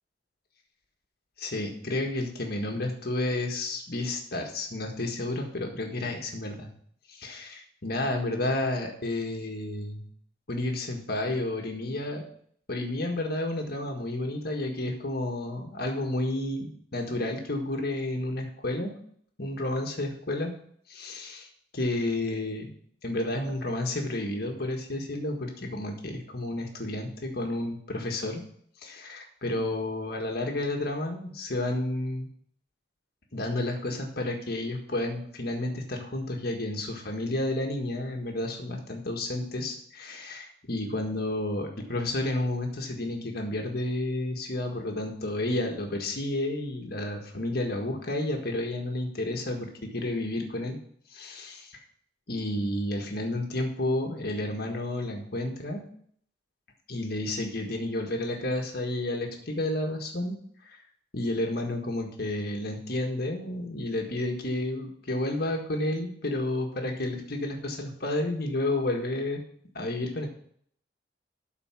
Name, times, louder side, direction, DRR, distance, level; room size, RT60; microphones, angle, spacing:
voice 1, 1.4-6.7 7.1-10.1 10.5-12.2 12.7-19.0 19.4-20.5 20.9-21.5 21.7-22.7 23.0-28.4 28.8-32.3 33.3-50.8 51.1-51.8 52.3-55.8 56.9-60.4 61.1-69.4 69.8-70.3, left 1 dB, 60° left, 2 dB, 1.6 m, -31 dB
12.5 x 4.6 x 5.9 m, 0.62 s
head